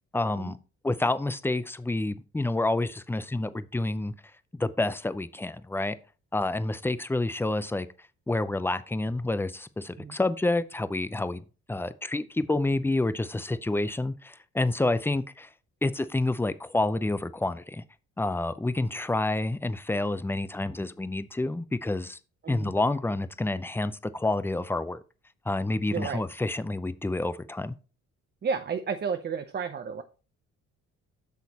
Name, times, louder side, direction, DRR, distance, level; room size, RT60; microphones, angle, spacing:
voice 1, 0.1-0.6 0.8-4.1 4.5-6.0 6.3-7.9 8.3-11.4 11.7-15.5 15.8-17.8 18.2-22.2 22.5-25.0 25.5-27.7, left 2 dB, 5° left, 0.5 m, -28 dB
voice 2, 25.9-26.2 28.4-30.0, right 6 dB, 35° right, 0.6 m, -32 dB
8.2 x 6.3 x 2.9 m
cardioid pair, 90°, 30 cm